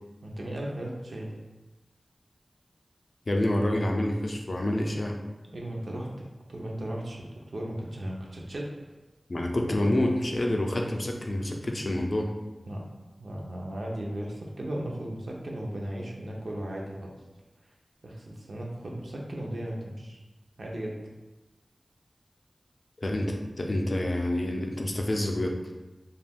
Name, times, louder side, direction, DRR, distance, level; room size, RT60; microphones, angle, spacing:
voice 1, 0.2-1.3 5.5-7.2 7.5-8.7 12.7-12.8 13.2-17.1 18.0-20.2 20.6-20.9, right 1 dB, 75° right, -2 dB, 0.5 m, -36 dB
voice 2, 3.3-5.2 9.3-12.3 23.0-25.6, left 1 dB, 55° left, 1 dB, 0.4 m, -27 dB
2.4 x 2.2 x 3.4 m, 1.1 s
wide cardioid pair, 60°, 0 cm